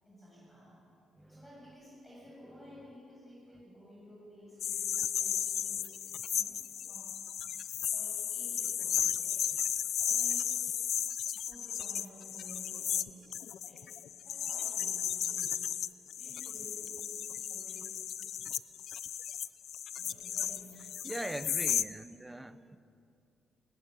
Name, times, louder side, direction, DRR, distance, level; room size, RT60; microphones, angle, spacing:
voice 1, 0.1-0.9 1.3-7.2 7.9-9.6 10.0-10.8 11.5-13.3 13.7-15.7 16.2-18.0 20.0-20.8, equal, 10° left, -5 dB, 7.4 m, -54 dB
sound 1, 4.6-21.8, left 9 dB, 70° left, 0.7 m, -34 dB
voice 2, 21.0-22.8, right 1 dB, 10° right, 12 dB, 1.0 m, -41 dB
21.0 x 19.5 x 9.3 m, 2.6 s
cardioid pair, 90°, 0 cm